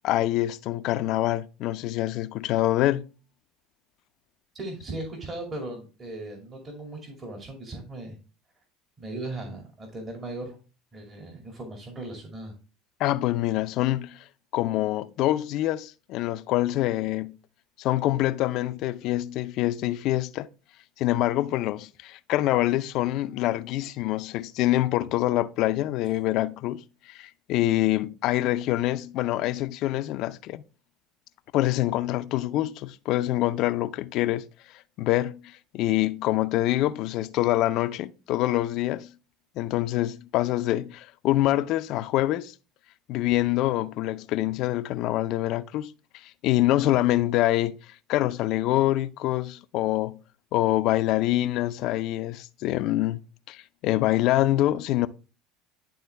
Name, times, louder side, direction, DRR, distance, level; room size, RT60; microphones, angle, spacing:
voice 1, 0.0-3.1 13.0-14.2 14.5-17.4 17.8-20.5 21.0-30.6 31.5-34.5 35.0-39.1 39.6-42.5 43.1-47.8 48.1-50.2 50.5-53.2 53.5-55.1, left 15 dB, 60° left, 0.5 m, -25 dB
voice 2, 4.5-8.2 9.0-10.6 10.9-12.5, right 2 dB, 35° right, 2.4 m, -37 dB
11.0 x 3.8 x 3.3 m
hypercardioid pair, 75°, 0 cm